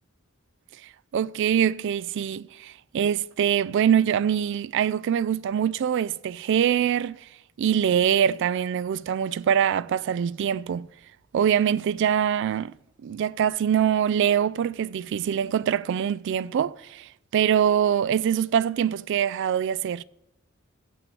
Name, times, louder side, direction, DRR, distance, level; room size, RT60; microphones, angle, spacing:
voice 1, 1.1-7.2 7.6-10.9 11.3-12.7 13.0-20.0, right 9 dB, 60° right, 0.3 m, -24 dB
7.6 x 6.0 x 7.6 m
head